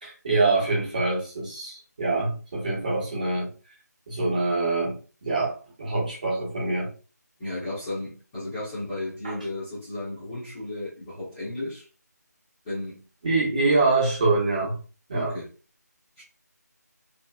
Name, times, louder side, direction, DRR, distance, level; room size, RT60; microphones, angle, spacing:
voice 1, 0.0-3.5 4.1-6.9 9.2-9.3 13.2-14.8 15.1-15.4, right 3 dB, 25° right, 1.0 m, -25 dB
voice 2, 7.4-11.8 12.6-13.0 15.2-15.5 16.2-16.3, left 2 dB, 10° left, 0.7 m, -34 dB
2.8 x 2.8 x 2.3 m
figure-of-eight pair, 170°, 9 cm